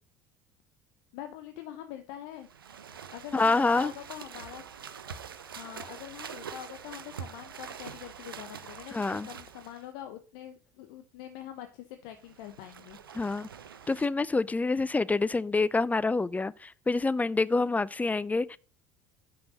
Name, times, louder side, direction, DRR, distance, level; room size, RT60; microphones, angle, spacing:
voice 1, 1.1-2.5 3.1-4.6 5.6-13.0, left 11 dB, 65° left, 0.8 m, -44 dB
sound 1, 2.4-9.9 12.1-14.1, right 7 dB, 85° right, 0.6 m, -45 dB
voice 2, 3.3-3.9 8.9-9.3 13.1-13.5 13.9-18.6, left 3 dB, 15° left, 0.5 m, -27 dB
6.1 x 5.9 x 6.1 m
hypercardioid pair, 65°, 11 cm